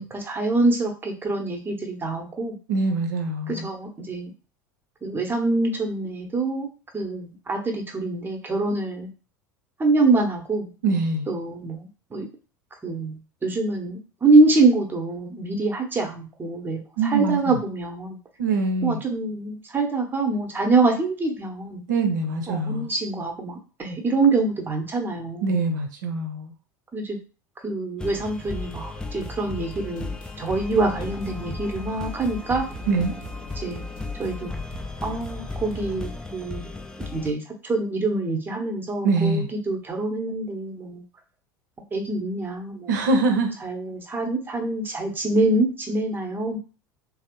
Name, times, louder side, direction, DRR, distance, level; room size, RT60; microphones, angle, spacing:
voice 1, 0.0-2.5 3.5-4.3 5.0-6.7 6.9-9.1 9.8-10.7 11.3-12.3 12.8-18.2 18.8-21.8 22.5-25.6 26.9-27.2 27.6-32.7 33.6-33.8 34.2-34.5 35.0-36.7 37.1-41.0 41.9-42.9 43.6-46.6, right 3 dB, 20° right, 3 dB, 0.8 m, -25 dB
voice 2, 2.7-3.7 10.8-11.3 17.0-17.6 18.4-19.0 21.9-22.9 25.4-26.5 32.9-33.1 39.0-39.5 42.9-43.5, right 3 dB, 70° right, 5 dB, 0.7 m, -23 dB
sound 1, 28.0-37.3, left 3 dB, 5° left, 0.4 m, -36 dB
sound 2, 28.4-36.1, left 2 dB, 45° left, 0.9 m, -40 dB
3.2 x 2.0 x 3.0 m, 0.35 s
figure-of-eight pair, 75°, 10 cm